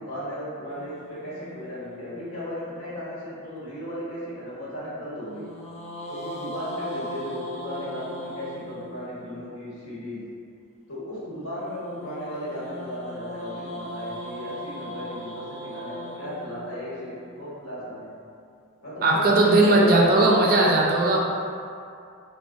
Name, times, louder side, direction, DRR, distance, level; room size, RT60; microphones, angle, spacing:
voice 1, 0.0-5.5 6.1-10.3 10.9-18.1 18.8-20.6, equal, 80° left, -9 dB, 1.1 m, -35 dB
sound 1, 0.7-3.1 5.3-9.5 11.6-17.8, equal, 30° left, 0.3 m, -39 dB
voice 2, 19.0-21.2, right 2 dB, 45° right, -2 dB, 0.4 m, -18 dB
3.9 x 2.1 x 2.6 m, 2.4 s
head